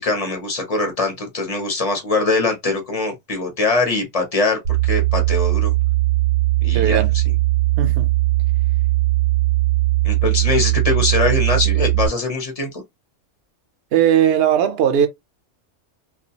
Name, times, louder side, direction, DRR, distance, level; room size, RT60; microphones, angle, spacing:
voice 1, 0.0-5.7 6.6-7.2 10.0-12.8, left 3 dB, 35° left, 0.8 m, -22 dB
sound 1, 4.6-12.1, right 19 dB, 80° right, 1.1 m, -19 dB
voice 2, 6.7-7.1 7.8-8.1 13.9-15.1, right 9 dB, 60° right, 0.7 m, -17 dB
2.4 x 2.3 x 2.8 m
omnidirectional pair, 1.3 m